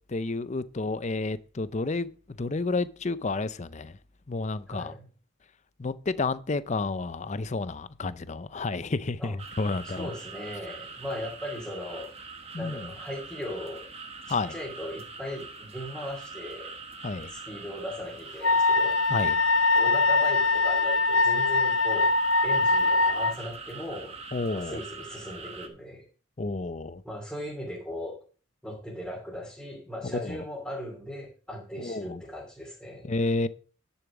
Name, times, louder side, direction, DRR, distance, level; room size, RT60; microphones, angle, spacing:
voice 1, 0.1-2.1 2.4-3.9 4.3-4.9 5.8-10.1 12.5-12.8 14.3-14.5 17.0-17.3 19.1-19.4 24.3-24.8 26.4-27.0 30.0-30.4 31.8-32.2 33.0-33.5, left 3 dB, 35° left, 0.5 m, -30 dB
voice 2, 4.7-5.1 9.2-12.1 12.6-13.8 14.3-16.7 17.3-19.0 19.7-22.1 22.4-24.1 24.5-26.0 27.0-28.1 28.6-33.1, left 1 dB, 5° left, 2.8 m, -38 dB
sound 1, 9.4-25.7, right 4 dB, 30° right, 1.2 m, -43 dB
Wind instrument woodwind instrument, 18.4-23.3, left 3 dB, 75° left, 0.7 m, -22 dB
10.5 x 7.1 x 4.9 m
head